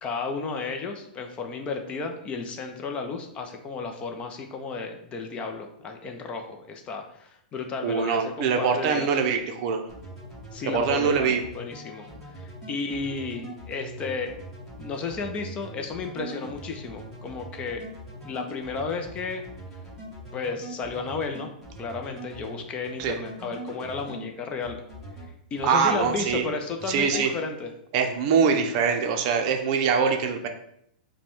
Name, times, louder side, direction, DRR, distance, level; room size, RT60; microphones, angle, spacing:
voice 1, 0.0-9.1 10.5-11.3 11.5-12.1 12.3-14.3 14.8-17.8 18.2-19.4 20.3-21.5 21.8-24.8 25.5-27.7, left 4 dB, 25° left, 4 dB, 0.5 m, -33 dB
voice 2, 7.8-9.8 10.6-11.4 23.0-23.2 25.6-26.5 26.9-27.3 27.9-30.5, right 6 dB, 45° right, 5 dB, 0.5 m, -23 dB
sound 1, 9.9-24.2 24.6-25.3 25.6-26.5 26.8-27.3, right 1 dB, 5° left, 1.5 m, -42 dB
4.9 x 2.2 x 3.5 m, 0.72 s
hypercardioid pair, 135°, 5 cm